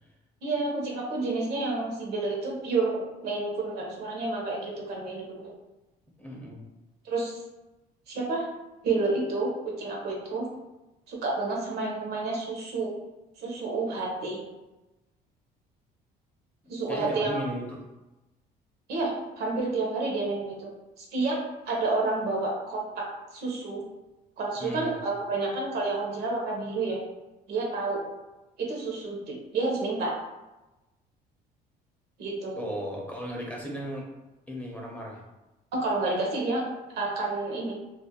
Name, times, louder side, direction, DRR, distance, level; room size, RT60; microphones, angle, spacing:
voice 1, 0.4-5.5 7.0-7.4 8.1-8.4 8.8-10.4 11.1-12.9 13.4-14.4 16.7-17.4 18.9-20.7 21.0-21.4 21.7-23.1 23.3-23.8 24.4-27.0 27.5-28.0 28.6-30.1 32.2-32.6 35.7-36.6 36.9-37.7, right 3 dB, 75° right, -1 dB, 0.7 m, -29 dB
voice 2, 6.2-6.7 16.9-17.8 24.6-25.0 32.6-34.1 34.5-35.2, equal, 10° left, -2 dB, 0.5 m, -35 dB
2.4 x 2.1 x 2.8 m, 1.0 s
cardioid pair, 110°, 17 cm